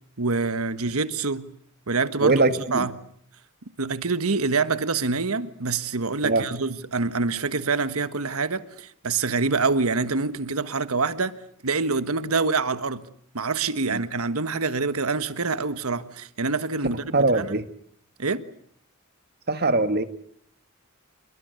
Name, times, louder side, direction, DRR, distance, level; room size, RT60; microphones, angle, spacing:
voice 1, 0.2-1.5 1.9-3.0 3.8-11.3 11.6-13.1 13.3-17.6 18.2-18.4, right 4 dB, 80° right, 1.4 m, -26 dB
voice 2, 2.2-2.9 6.2-6.4 13.9-14.0 17.1-17.6 19.5-20.0, right 2 dB, 50° right, 1.8 m, -21 dB
27.5 x 22.0 x 8.2 m
head